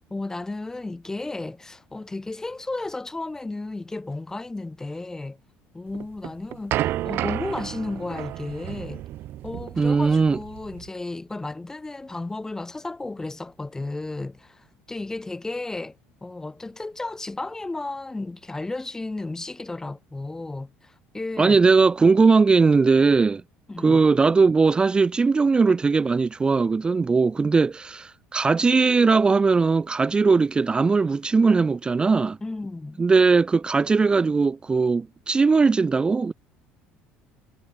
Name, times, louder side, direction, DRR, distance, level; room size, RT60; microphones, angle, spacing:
voice 1, 0.1-5.4 5.7-9.0 9.4-21.6 23.7-24.0 32.4-33.0, left 2 dB, 10° left, 1.1 m, -33 dB
sound 1, 5.9-10.9, right 14 dB, 55° right, 0.5 m, -31 dB
voice 2, 9.8-10.4 21.4-23.4 23.8-32.4 33.0-36.3, right 4 dB, 20° right, 0.7 m, -19 dB
supercardioid pair, 105°, 4 cm